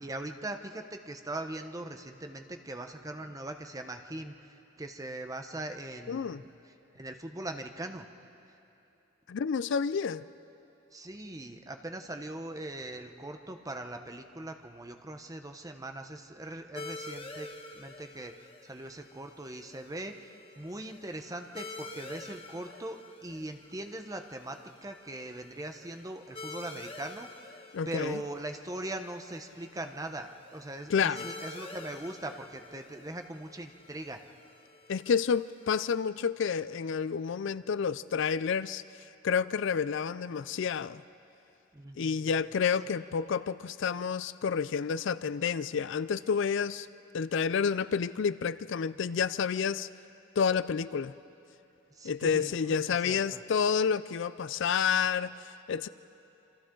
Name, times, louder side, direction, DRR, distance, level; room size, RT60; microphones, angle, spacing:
voice 1, 0.0-6.5 6.9-8.1 10.9-27.5 27.9-34.2 41.7-42.3 52.0-53.4, right 1 dB, 20° right, 6 dB, 1.0 m, -41 dB
voice 2, 6.1-6.4 9.3-10.2 27.7-28.2 30.9-31.3 34.9-38.8 39.2-41.0 42.0-46.9 47.1-49.9 50.4-51.1 52.0-55.9, left 6 dB, 65° left, 16 dB, 0.4 m, -29 dB
sound 1, 16.8-35.9, left 2 dB, 30° left, 1.2 m, -48 dB
27.0 x 26.5 x 3.9 m, 2.9 s
head